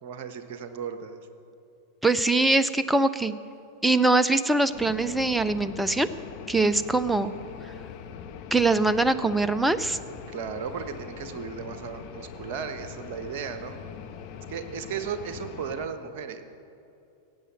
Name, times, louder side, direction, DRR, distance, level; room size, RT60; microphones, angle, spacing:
voice 1, 0.0-1.2 10.3-13.8 14.5-16.4, right 7 dB, 45° right, 9 dB, 1.2 m, -35 dB
voice 2, 2.0-3.3 3.8-6.1 6.5-7.3 8.5-10.0, right 2 dB, 5° right, 13 dB, 0.6 m, -22 dB
sound 1, 4.7-15.9, left 7 dB, 45° left, 1.1 m, -42 dB
16.5 x 8.8 x 7.7 m, 2.7 s
figure-of-eight pair, 90°, 0 cm